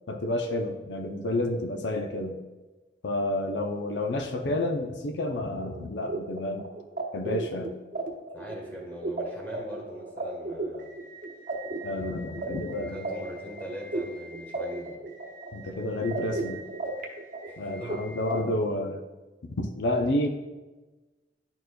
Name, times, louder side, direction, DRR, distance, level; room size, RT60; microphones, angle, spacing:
voice 1, 0.1-2.4 3.0-6.7 7.1-7.8 11.8-13.1 15.5-16.6 17.6-19.0 19.4-20.3, left 1 dB, 80° left, 4 dB, 0.6 m, -30 dB
sound 1, 5.5-18.4, right 2 dB, 50° right, 0.9 m, -36 dB
voice 2, 8.3-10.9 12.9-15.0 17.4-17.9, equal, 10° left, -3 dB, 1.5 m, -41 dB
10.5 x 4.4 x 2.3 m, 1.2 s
head